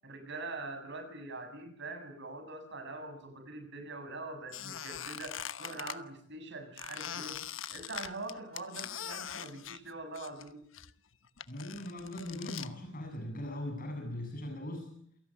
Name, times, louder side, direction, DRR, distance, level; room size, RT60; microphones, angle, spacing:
voice 1, 0.0-7.4 7.7-10.6, right 2 dB, 60° right, 7 dB, 7.4 m, -43 dB
Squeak, 4.5-6.0 6.8-10.5 10.7-12.7, left 9 dB, 70° left, 1.2 m, -42 dB
voice 2, 11.5-14.9, left 1 dB, 45° left, 4 dB, 7.9 m, -40 dB
28.5 x 17.5 x 9.1 m, 0.68 s
head